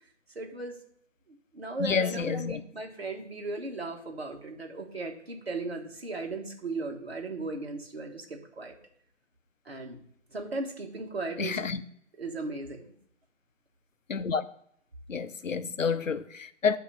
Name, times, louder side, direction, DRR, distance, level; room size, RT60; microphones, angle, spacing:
voice 1, 0.3-0.7 1.5-8.7 9.6-10.0 10.3-11.7 12.2-12.9, right 2 dB, 55° right, 1.6 m, -36 dB
voice 2, 1.8-2.6 11.4-11.8 14.1-14.4 15.1-16.8, left 5 dB, 85° left, 0.7 m, -29 dB
8.3 x 3.0 x 5.1 m
figure-of-eight pair, 175°, 38 cm